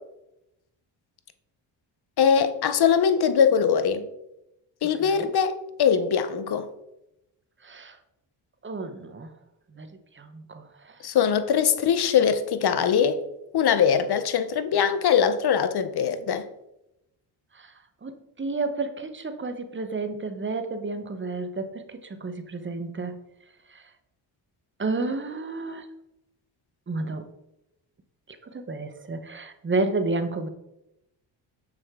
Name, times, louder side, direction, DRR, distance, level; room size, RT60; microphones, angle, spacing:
voice 1, 2.2-4.1 4.8-6.7 11.0-13.2 13.5-16.4, left 7 dB, 55° left, 0.8 m, -22 dB
voice 2, 7.6-8.0 8.6-9.3 9.7-9.9 10.2-11.0 17.5-17.7 18.0-23.2 23.7-23.8 24.8-25.9 26.9-27.2 28.5-30.5, right 3 dB, 25° right, 0.9 m, -31 dB
6.7 x 6.1 x 3.6 m
cardioid pair, 75°, 47 cm